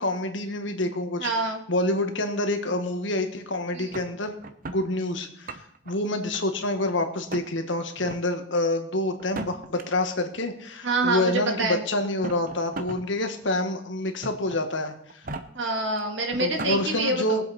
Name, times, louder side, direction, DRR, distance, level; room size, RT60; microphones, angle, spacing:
voice 1, 0.0-1.3 1.7-4.3 4.7-5.6 5.8-14.9 16.4-17.5, left 1 dB, 75° left, 6 dB, 1.5 m, -27 dB
voice 2, 1.2-1.6 3.7-4.0 10.8-11.8 15.5-17.4, right 2 dB, 70° right, 3 dB, 2.1 m, -26 dB
sound 1, 3.9-4.8 5.3-5.9 6.3-6.9 7.3-7.5 8.0-8.2 9.2-9.8 10.9-11.0 12.0-13.0 13.4-13.5 14.2-14.6 15.1-15.4 16.0-16.1 16.3-16.8, right 2 dB, 45° right, 0.8 m, -36 dB
20.5 x 7.8 x 4.3 m, 0.69 s
head